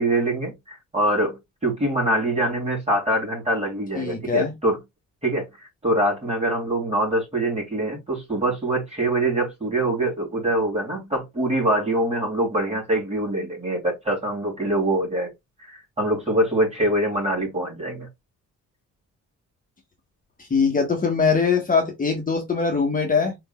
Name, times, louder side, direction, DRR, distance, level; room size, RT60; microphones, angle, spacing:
voice 1, 0.0-4.8 5.2-5.4 5.8-15.3 15.7-18.1, right 1 dB, 20° right, 3.2 m, -24 dB
voice 2, 4.0-4.5 20.4-23.3, left 5 dB, 25° left, 1.3 m, -22 dB
4.7 x 3.7 x 2.3 m
cardioid pair, 90°, 30 cm